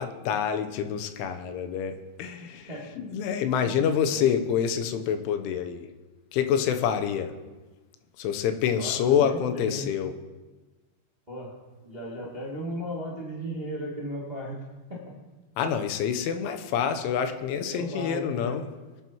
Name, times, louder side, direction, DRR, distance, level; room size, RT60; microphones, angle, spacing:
voice 1, 0.0-2.7 3.0-5.9 6.3-7.3 8.2-10.1 15.6-18.6, left 8 dB, 85° left, 7 dB, 3.3 m, -27 dB
voice 2, 2.4-2.9 4.1-4.3 8.6-9.9 11.3-11.5 11.8-14.6 14.9-15.0 17.6-18.6, equal, 20° right, -5 dB, 1.1 m, -36 dB
25.0 x 9.4 x 3.0 m, 1.2 s
omnidirectional pair, 5.5 m